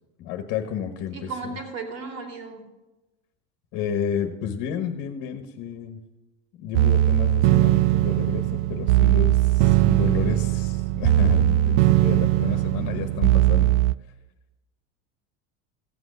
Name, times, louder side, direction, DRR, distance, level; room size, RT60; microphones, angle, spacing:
voice 1, 0.2-1.5 3.7-6.0 6.6-13.7, left 8 dB, 50° left, 7 dB, 1.3 m, -31 dB
voice 2, 1.1-2.6, right 4 dB, 50° right, 4 dB, 2.7 m, -35 dB
sound 1, 6.7-13.9, right 15 dB, 85° right, 0.5 m, -20 dB
15.5 x 7.9 x 6.6 m, 1.1 s
supercardioid pair, 145°, 35 cm